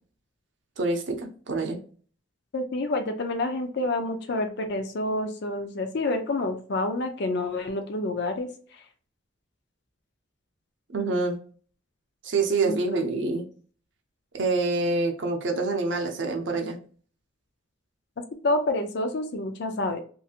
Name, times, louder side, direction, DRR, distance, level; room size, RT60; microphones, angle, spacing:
voice 1, 0.8-1.8 10.9-11.4 12.2-13.4 14.3-16.8, right 3 dB, 65° right, 3 dB, 0.6 m, -26 dB
voice 2, 2.5-8.8 12.6-13.0 18.4-20.0, left 2 dB, 55° left, 6 dB, 0.5 m, -28 dB
2.8 x 2.6 x 2.4 m, 0.43 s
head